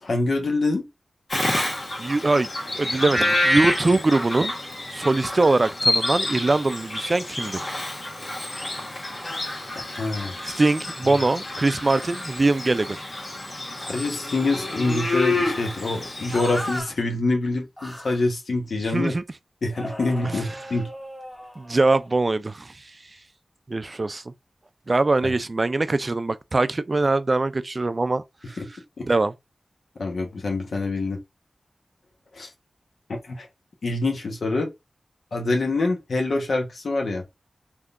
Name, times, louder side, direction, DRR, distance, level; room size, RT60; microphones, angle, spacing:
voice 1, 0.0-0.9 9.7-10.4 11.1-11.2 13.9-19.1 19.6-20.9 25.2-25.3 28.6-28.7 30.0-31.2 32.3-32.5 33.3-33.5 33.8-34.7 35.3-37.2, left 2 dB, 75° left, 0.9 m, -25 dB
Bird vocalization bird call bird song, 1.3-16.8, left 1 dB, 45° left, 1.6 m, -28 dB
voice 2, 2.0-2.5 2.7-4.5 4.9-7.6 10.4-13.0 18.9-19.2 20.3-20.4 21.6-22.7 23.7-24.2 24.9-28.2 28.5-28.6 29.0-29.3, right 2 dB, 40° right, 0.3 m, -22 dB
sound 1, 16.3-16.9 17.8-18.3 19.8-22.1, equal, 20° left, 1.2 m, -36 dB
3.6 x 2.7 x 2.4 m
wide cardioid pair, 85°, 0 cm